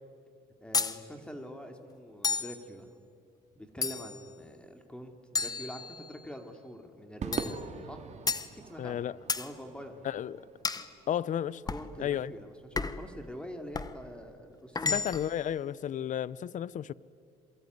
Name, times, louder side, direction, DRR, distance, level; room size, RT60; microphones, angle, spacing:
voice 1, 0.6-2.9 3.5-8.0 8.6-9.1 9.4-9.9 11.7-15.1, equal, 5° left, 2.6 m, -45 dB
sound 1, 0.7-1.0 2.2-2.6 3.8-4.3 5.4-6.3 7.3-7.6 8.3-8.5 9.3-9.5 10.6-10.9 11.7-11.9 12.8-13.1 13.7-14.0 14.8-15.4, left 4 dB, 20° left, 1.2 m, -32 dB
Crowd / Fireworks, 7.2-11.7, right 6 dB, 40° right, 2.1 m, -42 dB
voice 2, 8.8-9.2 10.0-10.4 11.1-11.6 12.0-12.3 14.8-16.9, left 10 dB, 50° left, 0.7 m, -32 dB
27.0 x 23.0 x 9.5 m
cardioid pair, 110°, 17 cm